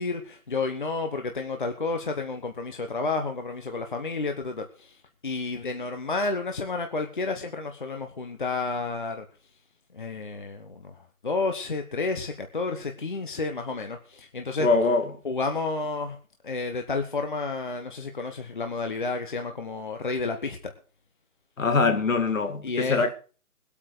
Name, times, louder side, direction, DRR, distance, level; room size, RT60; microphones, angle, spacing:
voice 1, 0.0-5.0 5.2-9.3 9.9-14.7 15.2-16.2 16.4-20.7 22.6-23.1, left 3 dB, 35° left, 1.2 m, -31 dB
voice 2, 14.6-15.1 21.6-23.1, left 3 dB, 60° left, 2.4 m, -23 dB
20.5 x 8.5 x 5.0 m
figure-of-eight pair, 170°, 44 cm